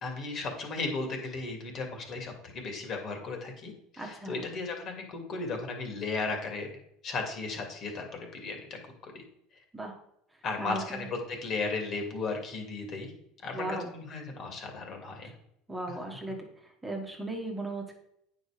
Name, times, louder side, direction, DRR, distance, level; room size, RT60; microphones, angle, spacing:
voice 1, 0.0-6.7 7.0-9.2 10.4-13.1 13.4-15.3, left 3 dB, 45° left, 3 dB, 2.4 m, -35 dB
voice 2, 4.0-4.4 9.7-9.9 10.6-11.1 13.5-13.9 15.7-17.9, right 2 dB, 10° right, 0 dB, 1.7 m, -37 dB
8.7 x 5.5 x 5.1 m, 0.77 s
supercardioid pair, 105°, 0 cm